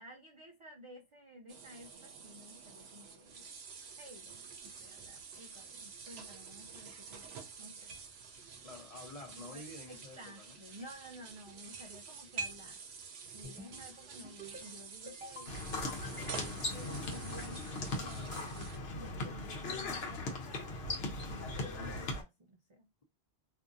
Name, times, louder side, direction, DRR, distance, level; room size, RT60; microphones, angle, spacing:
voice 1, 0.0-3.4 4.0-7.9 8.4-8.7 9.3-12.8 13.3-20.7 21.3-22.9, equal, 50° right, 0.4 m, -53 dB
sound 1, 1.5-18.8, right 5 dB, 80° right, 0.9 m, -48 dB
voice 2, 8.6-10.6, left 2 dB, 40° left, 0.7 m, -49 dB
sound 2, 13.4-13.9 14.2-14.7 15.1-15.5 15.9-16.6, left 1 dB, 10° right, 0.9 m, -49 dB
sound 3, 15.5-22.2, left 2 dB, 75° left, 1.0 m, -39 dB
2.6 x 2.5 x 2.5 m
omnidirectional pair, 1.1 m